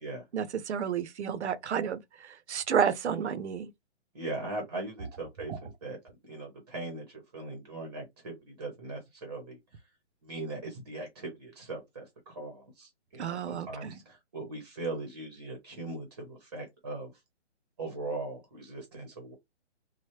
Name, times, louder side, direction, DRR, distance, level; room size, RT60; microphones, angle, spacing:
voice 1, 0.3-3.7 5.5-5.6 13.2-14.0, right 8 dB, 75° right, 0.6 m, -31 dB
voice 2, 4.1-6.0 6.3-9.6 10.2-17.1 17.8-19.3, right 2 dB, 20° right, 0.7 m, -39 dB
3.2 x 2.1 x 2.8 m
hypercardioid pair, 170°, 34 cm